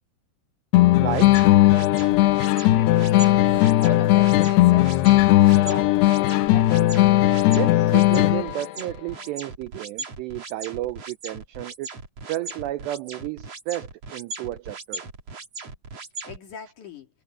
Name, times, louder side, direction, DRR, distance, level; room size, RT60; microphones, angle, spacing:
sound 1, 0.7-8.7, left 16 dB, 80° left, 2.4 m, -17 dB
voice 1, 1.0-1.5 7.5-11.9 12.3-15.0, right 15 dB, 85° right, 2.4 m, -32 dB
sound 2, 1.1-16.4, right 4 dB, 35° right, 3.4 m, -39 dB
voice 2, 2.4-5.0 5.4-7.0 16.2-17.1, left 4 dB, 50° left, 3.1 m, -39 dB
omnidirectional pair, 5.8 m